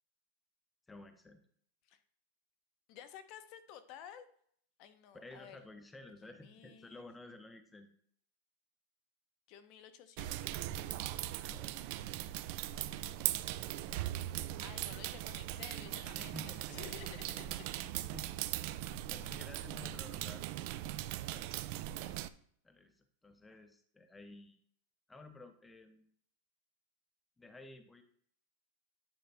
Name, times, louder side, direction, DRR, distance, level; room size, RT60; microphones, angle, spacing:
voice 1, 0.9-1.4 5.1-7.9 11.4-11.8 16.1-17.0 18.1-18.3 19.1-20.5 21.2-21.7 22.6-24.6 25.1-26.1 27.4-28.0, left 2 dB, 10° left, 8 dB, 0.7 m, -53 dB
voice 2, 2.9-4.3 4.8-5.6 6.3-7.1 9.5-10.6 14.6-18.1 20.2-20.3 21.9-22.2, left 9 dB, 50° left, 10 dB, 0.7 m, -53 dB
sound 1, 10.2-22.3, right 14 dB, 55° right, 0.4 m, -40 dB
9.1 x 3.9 x 3.4 m, 0.63 s
supercardioid pair, 135°, 0 cm